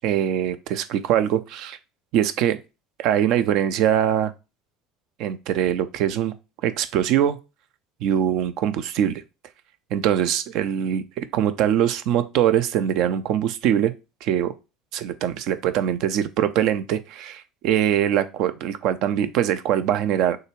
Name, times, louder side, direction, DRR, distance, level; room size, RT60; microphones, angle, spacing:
voice 1, 0.0-1.8 2.1-2.6 3.0-4.3 5.2-6.3 6.6-7.4 8.0-9.2 9.9-13.9 14.2-14.5 14.9-20.4, right 10 dB, 55° right, 0.5 m, -22 dB
6.4 x 2.4 x 3.0 m
figure-of-eight pair, 65°, 0 cm